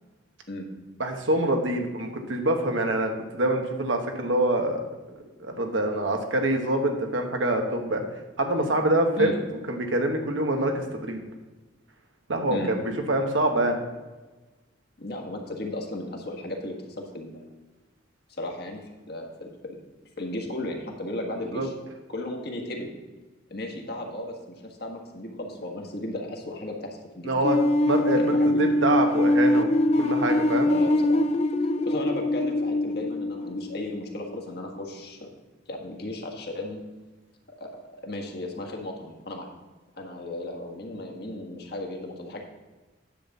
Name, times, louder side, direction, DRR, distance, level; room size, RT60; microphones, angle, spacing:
voice 1, 1.0-4.8 5.4-9.3 9.7-11.2 12.3-13.8 21.5-21.7 27.2-27.6 27.9-29.7 30.0-30.7, right 1 dB, 80° right, 4 dB, 1.3 m, -25 dB
voice 2, 15.0-17.4 18.4-19.8 20.2-21.7 22.1-22.9 23.5-24.4 24.6-27.3 28.2-28.7 30.6-31.2 31.9-35.3 35.7-36.8 37.6-39.5 40.0-42.4, left 1 dB, 55° left, 1 dB, 1.6 m, -35 dB
sound 1, 27.4-34.3, left 1 dB, 35° left, 0.4 m, -23 dB
10.0 x 4.2 x 7.1 m, 1.2 s
head